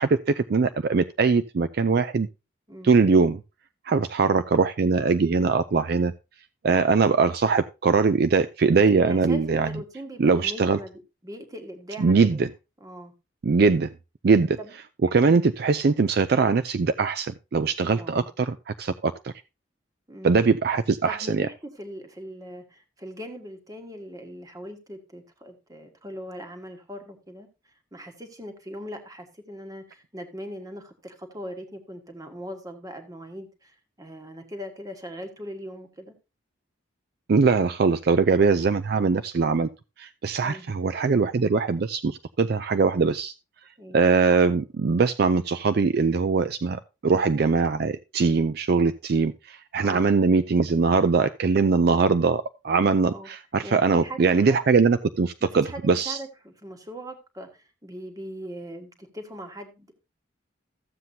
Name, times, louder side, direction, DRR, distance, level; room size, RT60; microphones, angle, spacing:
voice 1, 0.0-2.3 2.8-3.4 3.9-6.1 6.6-9.7 10.2-10.8 12.0-12.5 13.4-13.9 14.2-14.6 15.1-19.3 20.2-21.5 37.3-39.7 40.0-43.3 43.9-56.2, right 4 dB, 50° right, 11 dB, 0.4 m, -21 dB
voice 2, 9.0-12.4 12.8-13.1 14.6-14.7 17.9-18.3 20.1-20.4 21.0-27.5 27.9-36.1 40.4-40.7 43.8-44.1 49.8-50.1 53.0-53.3 53.6-54.6 55.4-59.9, equal, 20° right, 5 dB, 1.4 m, -40 dB
14.0 x 7.6 x 2.7 m, 0.28 s
head